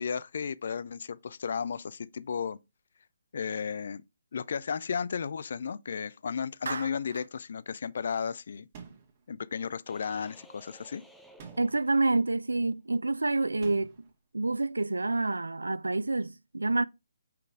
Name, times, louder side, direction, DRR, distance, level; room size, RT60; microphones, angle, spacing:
voice 1, 0.0-2.6 3.3-4.0 4.3-8.7 9.3-11.0, left 6 dB, 55° left, 0.4 m, -34 dB
Clapping, 6.7-7.3, right 4 dB, 65° right, 0.8 m, -37 dB
sound 1, 8.7-9.2 11.4-11.9 13.6-14.1, right 6 dB, 35° right, 1.9 m, -48 dB
sound 2, 9.9-12.5, equal, ahead, 0.7 m, -56 dB
voice 2, 11.6-13.9 14.3-16.8, right 2 dB, 80° right, 0.3 m, -28 dB
5.8 x 3.9 x 4.6 m
figure-of-eight pair, 140°, 0 cm